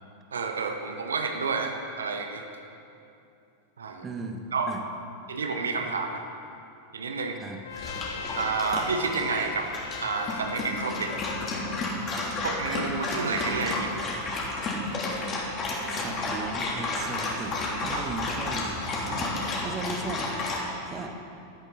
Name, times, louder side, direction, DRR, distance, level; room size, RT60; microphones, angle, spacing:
voice 1, 0.3-2.4 3.8-4.0 4.5-4.7 5.3-6.3 6.9-7.4 8.3-9.7 10.0-11.1 12.4-13.9 17.9-18.0, right 4 dB, 70° right, 4 dB, 1.1 m, -30 dB
voice 2, 4.0-4.8 7.4-7.6 15.9-18.7 19.0-21.1, right 3 dB, 20° right, 4 dB, 1.5 m, -37 dB
Trumpet, 7.6-11.9, left 7 dB, 60° left, 0.9 m, -39 dB
Dog, 7.7-20.6, left 2 dB, 30° left, 3.3 m, -32 dB
17.5 x 13.5 x 4.2 m, 2.7 s
figure-of-eight pair, 90°, 0 cm